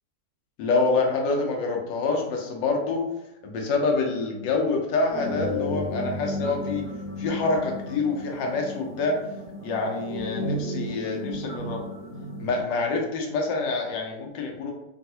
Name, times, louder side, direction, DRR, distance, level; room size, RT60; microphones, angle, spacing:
voice 1, 0.6-3.0 3.4-6.9 7.2-9.2 9.6-11.8 12.4-14.7, left 3 dB, 85° left, 1 dB, 1.4 m, -26 dB
sound 1, 5.1-12.6, left 1 dB, 70° left, 1.6 m, -33 dB
3.6 x 2.3 x 2.7 m, 0.93 s
omnidirectional pair, 1.9 m